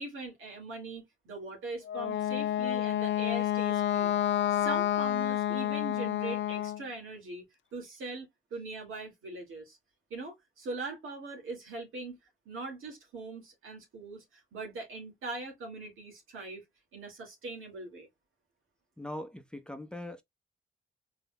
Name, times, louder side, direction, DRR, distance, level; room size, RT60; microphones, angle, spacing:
voice 1, 0.0-4.2 4.5-7.5 7.7-9.8 10.1-12.2 12.5-16.6 16.9-18.1, right 3 dB, 85° right, 2.3 m, -41 dB
Wind instrument woodwind instrument, 1.9-6.8, left 11 dB, 65° left, 0.4 m, -29 dB
voice 2, 19.0-20.2, left 1 dB, 5° left, 0.8 m, -41 dB
5.3 x 4.0 x 2.2 m
cardioid pair, 65°, 20 cm